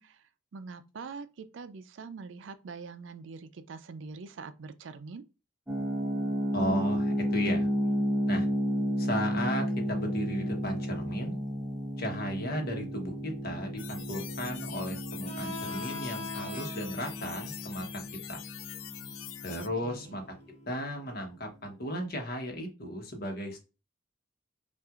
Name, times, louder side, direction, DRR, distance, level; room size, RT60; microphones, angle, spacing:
voice 1, 0.0-5.2 19.6-20.2, right 4 dB, 70° right, 0.4 m, -44 dB
sound 1, 5.7-20.4, equal, ahead, 0.8 m, -33 dB
voice 2, 6.5-7.7 8.3-8.5 9.0-11.4 12.0-18.0 18.3-18.4 19.4-20.2 20.7-23.6, equal, 50° left, 1.0 m, -35 dB
sound 2, 13.8-19.7, left 12 dB, 80° left, 0.3 m, -44 dB
Harmonica, 15.2-20.5, left 3 dB, 30° left, 1.1 m, -44 dB
5.7 x 2.5 x 2.4 m
head